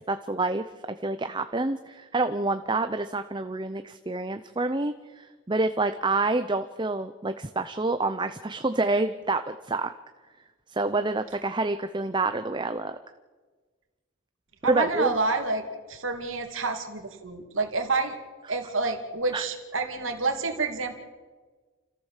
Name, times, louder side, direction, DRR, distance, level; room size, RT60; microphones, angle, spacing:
voice 1, 0.1-9.9 10.7-13.0 14.6-15.1 19.3-19.4, right 2 dB, 25° right, 9 dB, 0.6 m, -28 dB
voice 2, 14.6-15.6 15.9-18.2 18.5-20.9, right 3 dB, 75° right, 4 dB, 2.7 m, -28 dB
29.5 x 14.5 x 7.4 m, 1.4 s
head